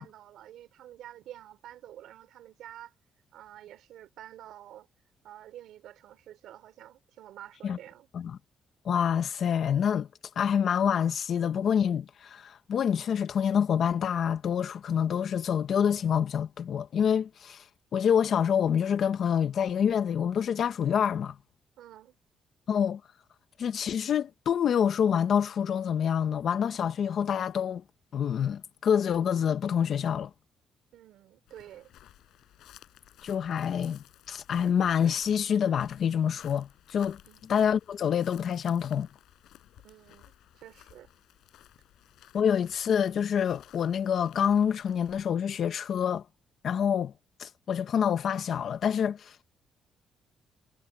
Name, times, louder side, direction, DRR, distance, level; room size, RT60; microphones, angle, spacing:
voice 1, 0.0-2.9 3.3-4.9 5.2-8.1 21.8-22.2 30.9-31.9 37.2-37.4 39.8-41.1, right 12 dB, 80° right, 3.8 m, -49 dB
voice 2, 8.8-10.1 10.4-17.7 17.9-21.4 22.7-23.0 23.6-27.8 28.1-30.3 33.2-37.2 37.5-39.1 42.3-46.2 46.6-47.1 47.4-49.4, left 8 dB, 60° left, 1.2 m, -27 dB
sound 1, 31.5-45.3, left 12 dB, 80° left, 5.0 m, -56 dB
cardioid pair, 90°, 0 cm